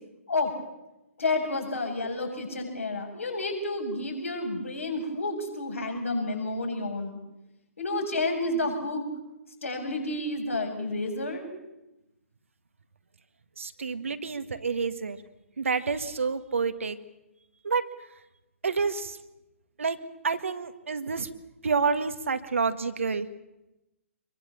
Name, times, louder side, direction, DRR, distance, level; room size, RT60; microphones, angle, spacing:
voice 1, 1.2-7.2 7.8-9.0 9.6-11.5, left 2 dB, 70° left, 2 dB, 7.4 m, -30 dB
voice 2, 13.6-15.2 15.6-17.0 17.6-17.8 18.6-19.2 19.8-20.0 20.2-21.3 21.6-23.3, right 5 dB, 65° right, 10 dB, 1.7 m, -28 dB
26.5 x 22.5 x 7.3 m, 0.96 s
figure-of-eight pair, 125°, 8 cm